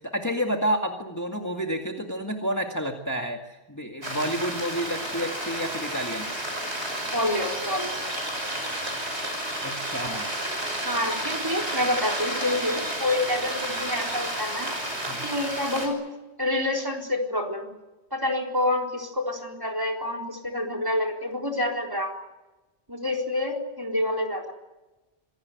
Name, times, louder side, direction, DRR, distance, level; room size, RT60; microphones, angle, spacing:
voice 1, 0.0-6.3 9.6-10.3 15.1-15.3, equal, 15° left, 2 dB, 2.0 m, -30 dB
sound 1, 4.0-15.9, right 1 dB, 90° right, 6.2 m, -31 dB
voice 2, 7.1-8.0 10.8-14.7 15.2-16.0 16.4-17.7 18.1-22.1 22.9-24.5, left 1 dB, 20° right, 1 dB, 4.1 m, -27 dB
26.0 x 18.0 x 9.5 m, 1.1 s
omnidirectional pair, 1.1 m